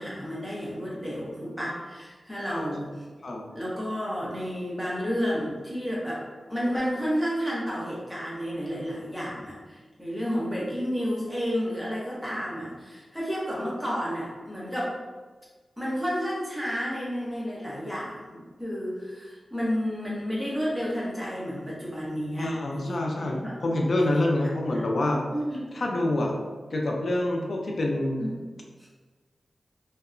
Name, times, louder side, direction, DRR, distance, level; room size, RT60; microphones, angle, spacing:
voice 1, 0.0-2.9 3.5-6.2 6.5-14.9 15.8-23.5 24.0-24.2 24.7-24.8 25.3-25.8 28.2-28.4 28.8-28.9, equal, ahead, -6 dB, 0.9 m, -31 dB
voice 2, 22.4-25.2 25.7-26.3 26.7-28.2, left 1 dB, 65° left, 0 dB, 0.4 m, -26 dB
2.8 x 2.1 x 2.4 m, 1.4 s
wide cardioid pair, 65°, 0 cm